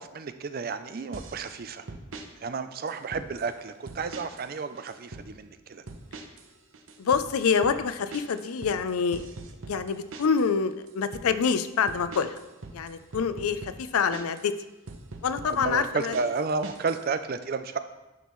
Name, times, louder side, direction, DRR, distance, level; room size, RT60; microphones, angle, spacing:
voice 1, 0.0-1.9 2.4-5.8 15.5-17.8, right 4 dB, 45° right, 11 dB, 0.4 m, -32 dB
sound 1, 1.1-1.5 1.9-2.3 2.9-3.5 3.9-4.5 4.8-5.3 5.9-6.5 6.7-10.5 10.9-11.3 11.9-14.5 14.9-17.0, right 3 dB, 65° right, 0.7 m, -42 dB
voice 2, 7.0-9.2 9.6-12.4 12.7-14.6 15.2-16.2, left 6 dB, 90° left, 11 dB, 0.5 m, -26 dB
10.5 x 5.4 x 3.1 m, 1.0 s
head